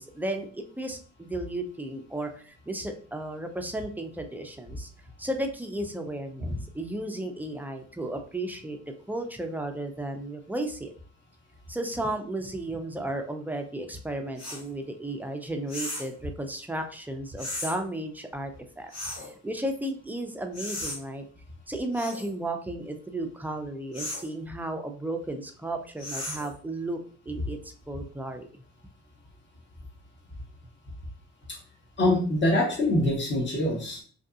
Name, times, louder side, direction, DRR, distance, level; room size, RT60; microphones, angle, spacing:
voice 1, 0.0-4.9 5.2-8.8 9.1-10.9 11.7-21.2 21.7-27.0 27.3-27.6 27.9-28.5, right 1 dB, 5° right, 4 dB, 0.3 m, -34 dB
sound 1, 14.4-14.6 15.7-16.1 17.4-17.7 18.9-19.3 20.5-21.0 21.9-22.3 23.9-24.3 26.0-26.5, left 1 dB, 60° left, 1.5 m, -35 dB
voice 2, 32.0-34.0, left 1 dB, 40° left, 0 dB, 1.0 m, -24 dB
2.6 x 2.5 x 2.4 m, 0.43 s
cardioid pair, 90°, 30 cm